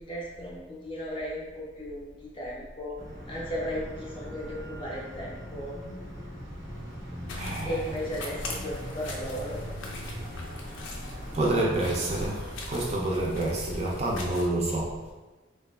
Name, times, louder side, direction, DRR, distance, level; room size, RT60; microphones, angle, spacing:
voice 1, 0.0-3.0 3.3-5.8 7.6-9.6, equal, 25° left, -4 dB, 0.4 m, -36 dB
sound 1, 3.0-12.5, equal, 85° right, 0.9 m, -41 dB
sound 2, 7.3-14.5, left 2 dB, 90° left, 0.4 m, -41 dB
voice 2, 7.3-7.8 10.0-10.5 11.3-15.1, right 1 dB, 35° right, -3 dB, 0.3 m, -29 dB
2.6 x 2.2 x 2.2 m, 1.2 s
head